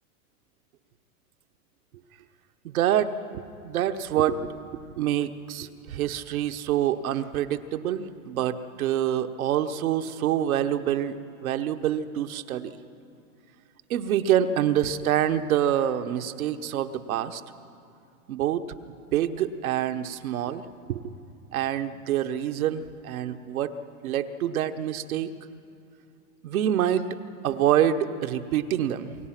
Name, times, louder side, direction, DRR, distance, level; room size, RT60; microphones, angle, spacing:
voice 1, 2.6-12.7 13.9-17.4 18.3-18.6 19.1-20.6 20.9-21.1 21.5-23.8 24.0-25.3 26.4-27.1 27.4-29.2, right 10 dB, 75° right, 9 dB, 1.1 m, -26 dB
28.0 x 17.0 x 5.9 m, 2.6 s
hypercardioid pair, 120°, 43 cm